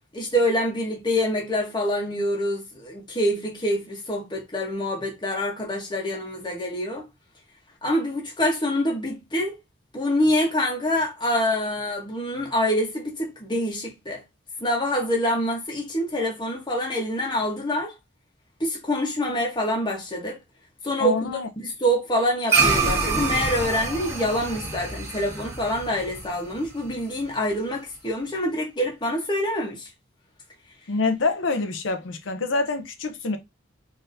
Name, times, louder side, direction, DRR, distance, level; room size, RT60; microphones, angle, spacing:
voice 1, 0.1-7.0 7.8-9.5 9.9-14.2 14.6-17.9 18.6-20.4 20.8-29.9, equal, 25° left, 1.0 m, -26 dB
voice 2, 21.0-21.5 30.9-33.4, left 3 dB, 70° left, 0.6 m, -26 dB
sound 1, 22.5-27.1, right 4 dB, 15° right, 1.2 m, -26 dB
4.0 x 2.8 x 2.6 m
head